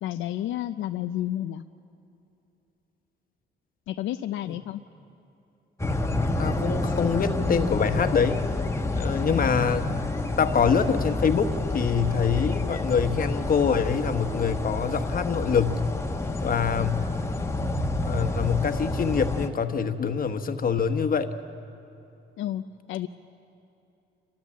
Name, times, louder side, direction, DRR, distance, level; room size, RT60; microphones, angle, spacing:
voice 1, 0.0-1.6 3.9-4.8 9.2-9.7 22.4-23.1, left 12 dB, 80° left, 8 dB, 0.5 m, -31 dB
sound 1, 5.8-19.5, left 2 dB, 15° left, 1.2 m, -28 dB
voice 2, 6.4-8.4 8.9-9.8 10.4-15.8 16.4-17.1 18.0-21.3, left 6 dB, 45° left, 8 dB, 1.3 m, -25 dB
29.0 x 13.5 x 7.5 m, 2.8 s
cardioid pair, 90°, 20 cm